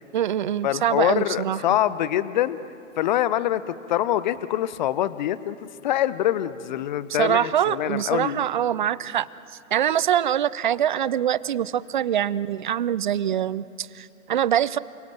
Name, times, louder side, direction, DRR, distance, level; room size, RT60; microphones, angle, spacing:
voice 1, 0.1-1.6 7.2-9.3 9.7-14.8, right 10 dB, 35° right, 20 dB, 0.5 m, -24 dB
voice 2, 0.6-2.6 3.0-8.5, left 12 dB, 35° left, 16 dB, 0.9 m, -25 dB
29.0 x 26.0 x 7.4 m, 2.6 s
figure-of-eight pair, 120°, 41 cm